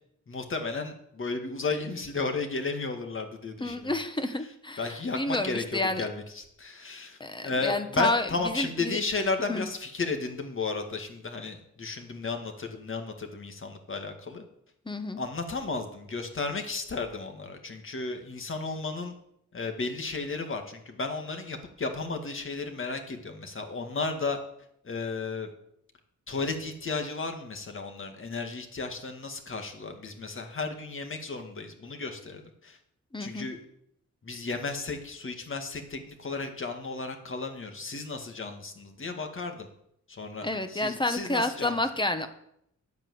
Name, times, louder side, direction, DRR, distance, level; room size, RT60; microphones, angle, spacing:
voice 1, 0.3-3.9 4.8-14.4 15.2-19.1 19.5-24.4 24.8-25.5 26.3-32.8 33.2-33.6 34.2-39.7 40.1-41.7, left 3 dB, 40° left, 5 dB, 2.1 m, -34 dB
voice 2, 3.6-6.0 7.2-9.0 9.5-9.6 14.8-15.2 33.1-33.5 40.4-42.3, left 2 dB, 15° left, 9 dB, 1.2 m, -30 dB
11.0 x 8.7 x 7.9 m, 0.75 s
wide cardioid pair, 120°, 30 cm